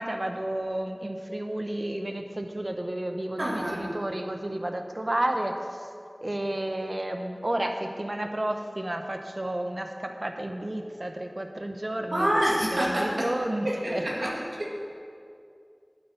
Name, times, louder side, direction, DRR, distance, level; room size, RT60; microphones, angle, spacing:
voice 1, 0.0-5.9 6.2-12.4 12.7-13.7 13.9-14.1, right 1 dB, 50° right, 5 dB, 0.9 m, -31 dB
voice 2, 3.4-3.9 12.1-13.3 13.6-14.3 14.6-14.7, equal, 80° right, -4 dB, 2.1 m, -27 dB
11.0 x 7.0 x 5.8 m, 2.4 s
wide cardioid pair, 40°, 0 cm